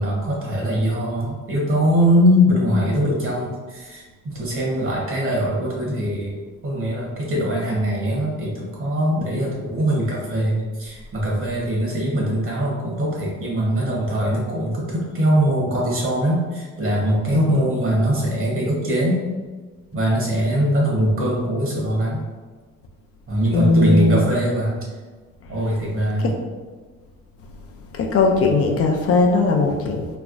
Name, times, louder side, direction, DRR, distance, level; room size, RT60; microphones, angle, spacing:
voice 1, 0.0-6.4 6.6-19.2 19.9-22.3 23.3-24.8 25.5-26.3, equal, 45° right, -4 dB, 1.1 m, -22 dB
voice 2, 17.3-17.7 23.5-24.3 26.2-26.4 27.9-30.1, left 3 dB, 50° left, 2 dB, 0.4 m, -19 dB
3.1 x 2.2 x 2.5 m, 1.4 s
cardioid pair, 90°, 30 cm